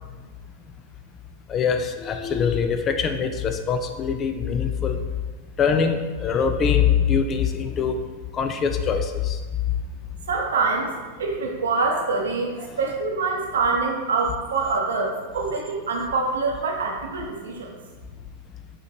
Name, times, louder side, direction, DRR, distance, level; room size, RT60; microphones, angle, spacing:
voice 1, 1.5-5.0 5.6-8.0 8.3-9.4, left 6 dB, 25° left, 6 dB, 0.3 m, -23 dB
voice 2, 10.2-10.9 11.2-17.7, right 4 dB, 65° right, 0 dB, 0.7 m, -25 dB
4.8 x 2.9 x 2.7 m, 1.3 s
figure-of-eight pair, 90°, 0 cm